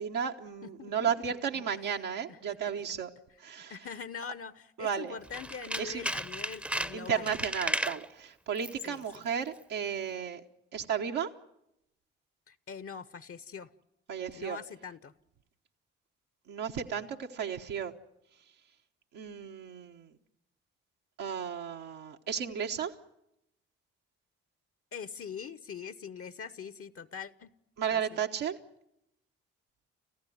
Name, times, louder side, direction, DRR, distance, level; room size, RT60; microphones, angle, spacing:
voice 1, 0.0-3.1 3.4-3.7 4.8-5.1 5.8-6.0 6.9-10.4 10.7-11.3 14.1-14.6 16.5-17.9 19.1-20.1 21.2-22.9 27.8-28.6, right 7 dB, 70° right, 1 dB, 1.3 m, -34 dB
voice 2, 0.6-1.1 2.3-2.6 3.7-7.4 8.8-9.2 12.5-13.7 14.3-15.1 24.9-27.5 27.9-28.2, left 6 dB, 40° left, 16 dB, 1.0 m, -43 dB
Tools, 5.2-8.1 8.6-8.9 9.1-9.2, right 1 dB, 5° right, 0.8 m, -34 dB
30.0 x 15.0 x 9.4 m, 0.85 s
hypercardioid pair, 40°, 33 cm